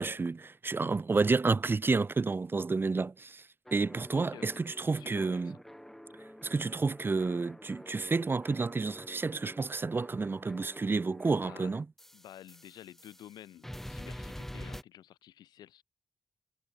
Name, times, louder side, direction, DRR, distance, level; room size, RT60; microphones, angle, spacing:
voice 1, 0.0-5.6 6.2-11.9, right 4 dB, 30° right, 0.4 m, -30 dB
sound 1, 3.7-13.4 13.6-14.8, equal, 5° left, 2.3 m, -47 dB
voice 2, 4.1-4.4 5.0-5.5 11.4-11.7 12.1-15.8, left 12 dB, 85° left, 3.7 m, -51 dB
supercardioid pair, 45°, 7 cm